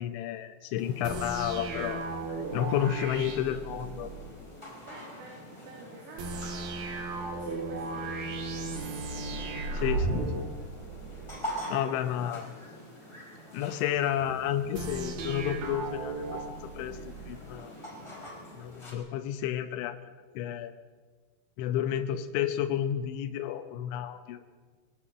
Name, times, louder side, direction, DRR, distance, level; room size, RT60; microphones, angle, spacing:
voice 1, 0.0-2.0 2.3-4.1 9.7-10.5 11.7-12.5 13.5-16.4 16.8-17.7 18.5-20.0 20.4-20.7 21.6-24.4, left 10 dB, 90° left, 8 dB, 3.2 m, -31 dB
sound 1, 0.8-18.9, equal, 5° left, 4.1 m, -45 dB
sound 2, 1.0-4.3 6.2-11.4 14.7-17.4, right 3 dB, 60° right, 3.6 m, -35 dB
voice 2, 2.5-2.9 4.8-8.9 20.4-20.6, right 2 dB, 75° right, -2 dB, 4.9 m, -50 dB
20.5 x 17.0 x 7.7 m, 1.5 s
omnidirectional pair, 5.2 m